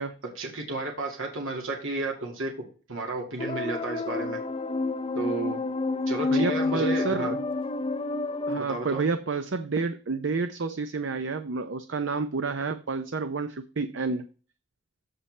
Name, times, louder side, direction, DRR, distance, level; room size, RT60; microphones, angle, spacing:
voice 1, 0.4-2.5 2.9-4.4 5.2-5.6 6.1-7.3 8.5-9.0, right 3 dB, 85° right, 1 dB, 2.1 m, -32 dB
sound 1, 3.4-8.6, left 3 dB, 25° left, 0.4 m, -29 dB
voice 2, 6.3-7.4 8.5-14.2, right 4 dB, 70° right, 10 dB, 0.6 m, -29 dB
14.5 x 5.6 x 3.3 m, 0.38 s
head